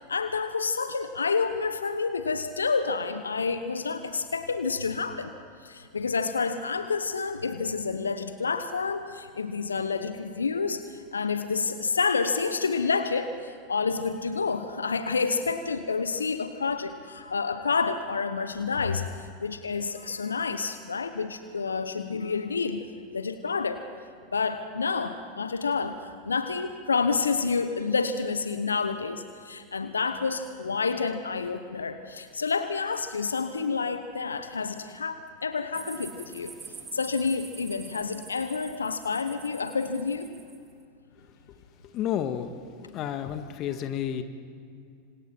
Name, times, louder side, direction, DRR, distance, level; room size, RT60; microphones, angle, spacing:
voice 1, 0.0-5.3 5.6-19.1 19.4-22.8 23.1-23.8 24.3-36.5 36.9-40.3, left 4 dB, 80° left, 10 dB, 1.0 m, -29 dB
sound 1, 35.7-40.6, right 6 dB, 25° right, 2.6 m, -46 dB
voice 2, 41.9-42.5 42.8-44.2, left 10 dB, 40° left, 8 dB, 1.6 m, -30 dB
27.5 x 26.5 x 4.5 m, 2.4 s
figure-of-eight pair, 90°, 0 cm